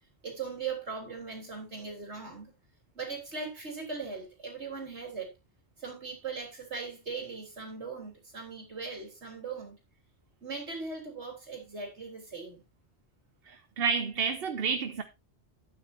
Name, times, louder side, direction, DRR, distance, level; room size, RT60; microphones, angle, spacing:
voice 1, 0.2-2.5 2.9-5.3 5.8-9.7 10.4-12.6, right 4 dB, 90° right, 3.9 m, -39 dB
voice 2, 13.5-15.0, right 5 dB, 60° right, 1.0 m, -30 dB
12.5 x 9.2 x 2.7 m
omnidirectional pair, 1.1 m